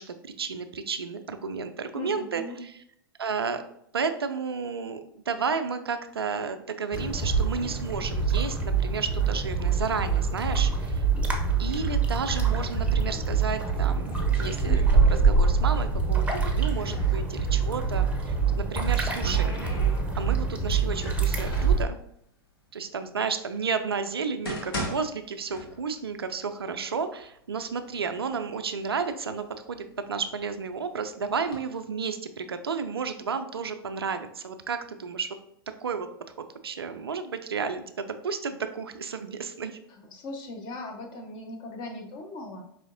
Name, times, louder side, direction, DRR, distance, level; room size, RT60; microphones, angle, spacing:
voice 1, 0.0-2.7 3.2-3.6 3.9-11.0 11.6-19.8 20.2-22.0 22.7-35.4 35.8-36.1 36.6-39.8, right 5 dB, 75° right, 9 dB, 0.4 m, -32 dB
voice 2, 1.9-2.6 39.9-42.6, left 2 dB, 35° left, 2 dB, 0.8 m, -39 dB
sound 1, 6.9-21.8, right 5 dB, 10° right, 0.7 m, -25 dB
sound 2, 14.0-15.5 15.8-17.2 18.3-20.4 20.9-21.8 22.6-22.7 23.4-23.5 24.1-26.1 26.4-26.5 27.2-27.3 27.7-28.4 28.9-30.6 31.2-31.6, equal, 65° left, 1.1 m, -39 dB
4.8 x 3.1 x 2.6 m, 0.71 s
figure-of-eight pair, 90°, 13 cm